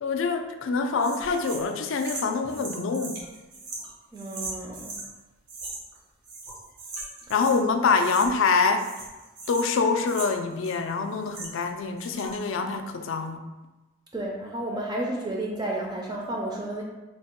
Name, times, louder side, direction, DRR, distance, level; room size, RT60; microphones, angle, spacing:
voice 1, 0.0-3.2 7.3-8.9 9.5-13.4, left 4 dB, 55° left, 6 dB, 0.3 m, -25 dB
sound 1, 1.0-5.1 5.5-6.0 6.2-7.6 7.9-8.5 8.7-11.7 12.0-12.5, right 3 dB, 90° right, 1.0 m, -39 dB
voice 2, 4.1-5.0 14.1-16.8, right 1 dB, 20° right, -1 dB, 0.4 m, -32 dB
3.4 x 2.1 x 4.3 m, 1.1 s
head